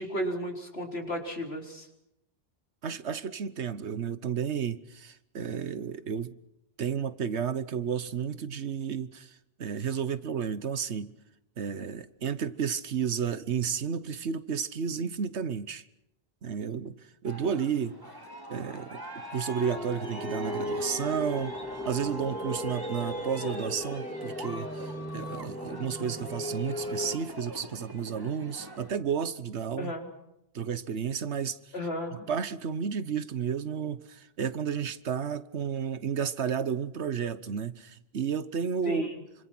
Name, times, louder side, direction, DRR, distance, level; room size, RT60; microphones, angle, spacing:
voice 1, 0.0-1.9 29.8-30.1 31.7-32.3 38.8-39.2, equal, 70° left, 4.1 m, -34 dB
voice 2, 2.8-6.3 6.8-9.3 9.6-11.1 11.6-15.8 16.4-16.9 17.2-18.0 18.5-19.0 19.3-21.6 21.8-24.8 25.1-29.9 30.5-31.6 32.3-39.1, right 7 dB, 85° right, 1.4 m, -32 dB
Aircraft, 17.2-28.9, right 1 dB, 20° right, 2.6 m, -42 dB
sound 1, 19.6-27.2, left 1 dB, 10° left, 0.7 m, -37 dB
27.0 x 25.5 x 6.2 m
omnidirectional pair, 1.1 m